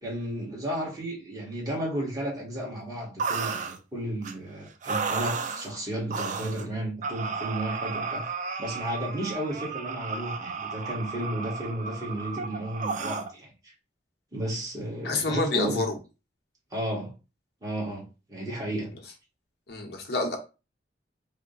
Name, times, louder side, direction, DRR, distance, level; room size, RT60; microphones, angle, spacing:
voice 1, 0.0-8.3 8.6-13.7 14.3-15.8 16.7-17.1 17.6-18.9, right 1 dB, 20° right, 1.4 m, -33 dB
sound 1, 3.2-3.8 4.2-4.3 4.8-5.7 6.1-6.6 7.0-13.3, right 5 dB, 45° right, 0.4 m, -33 dB
voice 2, 15.0-16.0 19.7-20.4, left 3 dB, 60° left, 0.9 m, -28 dB
3.5 x 2.2 x 3.8 m
head